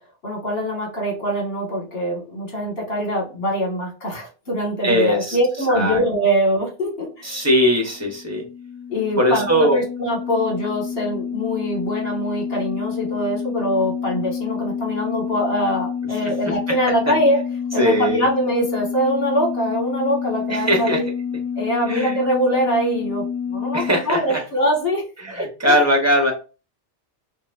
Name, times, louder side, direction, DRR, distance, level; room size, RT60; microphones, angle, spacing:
voice 1, 0.2-7.4 8.9-17.4 17.7-21.1 21.6-25.8, equal, 55° left, -1 dB, 2.0 m, -23 dB
voice 2, 4.8-5.4 5.7-6.0 7.2-8.4 9.2-9.8 16.3-16.5 16.8-16.9 17.8-18.2 20.5-21.0 21.9-22.2 23.7-24.4 25.2-26.3, equal, 15° right, 1 dB, 1.3 m, -20 dB
sound 1, 7.7-23.9, left 7 dB, 30° left, 0.9 m, -28 dB
5.5 x 2.7 x 2.6 m, 0.33 s
omnidirectional pair, 1.2 m